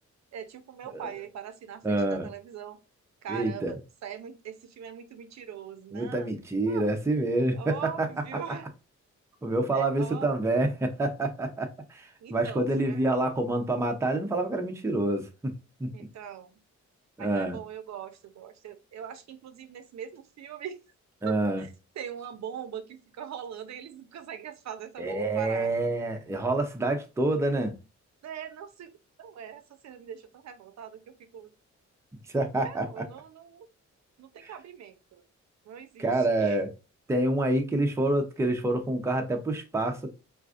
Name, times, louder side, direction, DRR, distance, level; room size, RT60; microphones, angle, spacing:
voice 1, 0.3-2.8 3.2-6.3 6.7-6.9 7.5-8.7 9.7-10.6 12.2-13.1 15.9-16.5 17.2-20.9 21.2-25.7 28.2-28.9 29.2-31.5 32.6-33.7 34.2-35.2 35.7-36.6, right 8 dB, 65° right, 0.5 m, -42 dB
voice 2, 1.8-2.3 3.3-3.7 5.9-8.1 9.4-15.9 17.2-17.6 21.2-21.6 25.0-27.7 32.3-33.0 34.4-34.5 36.0-36.7 37.1-40.1, right 2 dB, 10° right, 0.5 m, -27 dB
4.6 x 2.5 x 2.4 m
wide cardioid pair, 150°, 29 cm